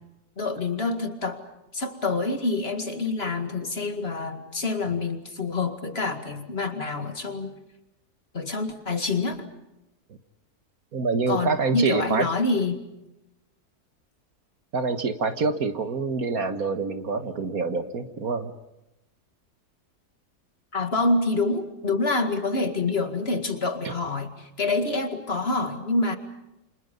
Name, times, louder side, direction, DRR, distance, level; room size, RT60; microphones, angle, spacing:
voice 1, 0.4-1.4 1.7-7.5 8.3-9.5 11.3-12.8 20.7-26.2, left 3 dB, 40° left, 7 dB, 2.3 m, -27 dB
voice 2, 10.9-12.3 14.7-18.5 23.9-24.0, right 4 dB, 65° right, 9 dB, 1.9 m, -26 dB
29.0 x 26.5 x 5.4 m, 0.93 s
omnidirectional pair, 1.7 m